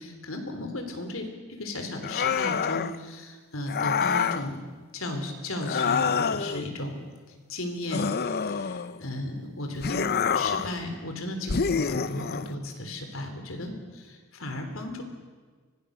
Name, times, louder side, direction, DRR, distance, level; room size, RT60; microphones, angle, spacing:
voice 1, 0.0-4.6 4.9-7.0 7.5-10.0 10.3-15.0, left 1 dB, 75° left, 5 dB, 3.5 m, -35 dB
sound 1, 2.0-3.0 3.7-4.5 5.6-6.6 7.9-9.0 9.8-10.8 11.5-12.5, left 6 dB, 50° left, 0.7 m, -27 dB
24.5 x 18.0 x 6.7 m, 1.4 s
head